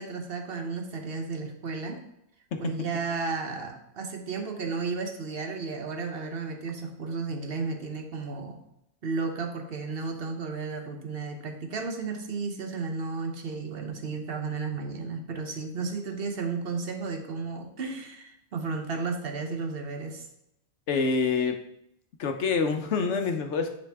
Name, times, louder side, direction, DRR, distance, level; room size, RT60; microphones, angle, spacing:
voice 1, 0.0-2.1 2.6-8.6 9.0-20.3, right 4 dB, 60° right, 5 dB, 1.0 m, -33 dB
voice 2, 20.9-21.6 22.2-23.8, left 5 dB, 85° left, 6 dB, 1.1 m, -26 dB
9.7 x 4.3 x 3.4 m, 0.80 s
omnidirectional pair, 1.2 m